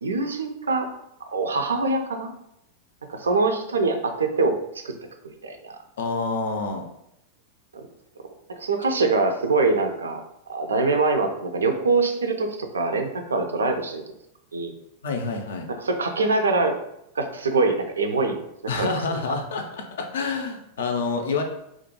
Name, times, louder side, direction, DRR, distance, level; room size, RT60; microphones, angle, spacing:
voice 1, 0.0-0.9 1.2-2.3 3.1-4.5 4.8-4.9 5.2-5.8 7.7-7.8 8.5-10.2 10.5-14.0 14.5-14.7 15.8-16.7 17.2-18.4 18.7-18.9, right 3 dB, 70° right, 5 dB, 0.3 m, -24 dB
voice 2, 6.0-6.8 15.0-15.7 18.7-21.4, left 4 dB, 60° left, 4 dB, 0.4 m, -27 dB
2.5 x 2.2 x 2.8 m, 0.79 s
figure-of-eight pair, 90°, 0 cm